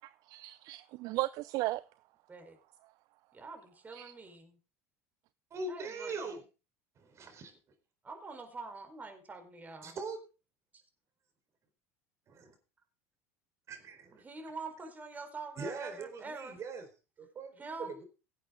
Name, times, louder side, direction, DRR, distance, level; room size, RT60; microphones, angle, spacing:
voice 1, 0.0-1.8 3.9-4.1, right 19 dB, 60° right, 0.5 m, -36 dB
voice 2, 3.3-4.6 5.7-6.4 8.0-10.0 10.7-10.8 14.1-16.6 17.6-18.0, right 3 dB, 20° right, 4.4 m, -45 dB
voice 3, 5.5-6.4 7.0-7.5 9.8-10.2 12.3-12.5 13.7-14.2 15.6-16.9 17.2-17.9, right 3 dB, 40° right, 4.3 m, -41 dB
17.5 x 8.5 x 3.8 m
hypercardioid pair, 80°, 7 cm